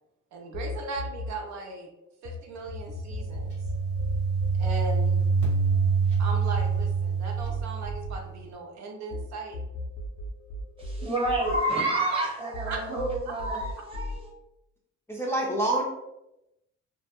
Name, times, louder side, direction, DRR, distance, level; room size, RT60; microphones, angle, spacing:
voice 1, 0.3-1.9 2.2-3.6 4.6-5.2 6.2-9.6 12.7-12.8, right 3 dB, 70° right, 3 dB, 0.5 m, -37 dB
sound 1, 0.5-2.4 2.7-9.2 9.5-12.2 12.5-14.2, left 2 dB, 70° left, 0.4 m, -37 dB
sound 2, 2.8-8.4, right 5 dB, 90° right, 1.1 m, -26 dB
voice 2, 10.8-14.3, right 1 dB, 20° right, -4 dB, 0.9 m, -29 dB
voice 3, 15.1-15.8, right 1 dB, 10° left, -3 dB, 0.4 m, -26 dB
2.2 x 2.1 x 2.8 m, 0.88 s
cardioid pair, 90°, 30 cm